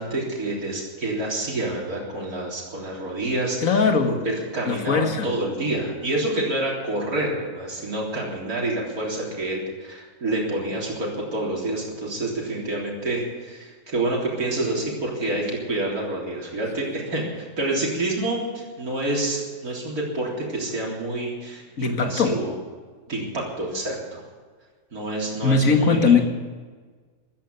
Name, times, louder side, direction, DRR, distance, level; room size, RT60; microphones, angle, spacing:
voice 1, 0.0-22.5 23.1-24.2 24.9-26.3, right 2 dB, 70° right, -3 dB, 4.1 m, -28 dB
voice 2, 3.6-4.2 4.7-5.3 21.8-22.4 25.4-26.3, left 5 dB, 60° left, 5 dB, 1.9 m, -20 dB
15.0 x 13.0 x 6.9 m, 1.5 s
omnidirectional pair, 1.6 m